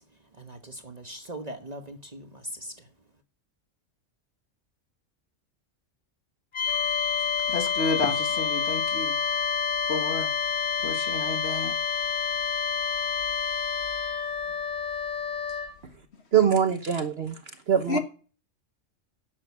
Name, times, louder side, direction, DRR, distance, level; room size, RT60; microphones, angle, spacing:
voice 1, 0.4-2.9, right 1 dB, 35° right, 1.2 m, -40 dB
sound 1, 6.5-14.3, left 7 dB, 45° left, 1.1 m, -29 dB
Wind instrument woodwind instrument, 6.7-15.8, left 5 dB, 80° left, 1.6 m, -32 dB
voice 2, 7.5-9.2 9.9-10.3 10.8-11.8 17.9-18.0, left 3 dB, 60° left, 1.7 m, -30 dB
voice 3, 16.3-17.4 17.7-18.0, right 8 dB, 55° right, 1.2 m, -23 dB
11.0 x 7.6 x 8.3 m
omnidirectional pair, 1.3 m